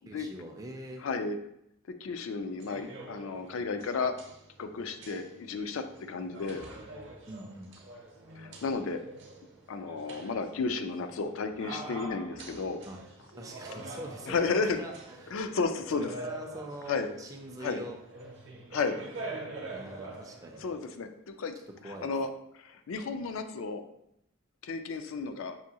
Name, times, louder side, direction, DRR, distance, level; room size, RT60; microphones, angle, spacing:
voice 1, 0.1-1.0 7.3-7.7 12.9-13.0 13.4-14.9 15.2-15.4 16.2-18.0 19.7-20.6 21.8-22.1, right 1 dB, 15° right, 2 dB, 0.3 m, -43 dB
voice 2, 1.0-1.4 2.0-4.1 4.6-6.6 8.4-9.0 9.7-12.8 14.3-14.8 15.3-16.1 16.9-17.1 17.6-17.8 18.7-19.0 20.6-21.5 21.8-22.3 22.5-23.8 24.6-25.6, left 4 dB, 75° left, 8 dB, 0.4 m, -33 dB
sound 1, 2.5-20.8, right 2 dB, 60° right, 0.6 m, -45 dB
5.6 x 2.6 x 2.8 m, 0.78 s
head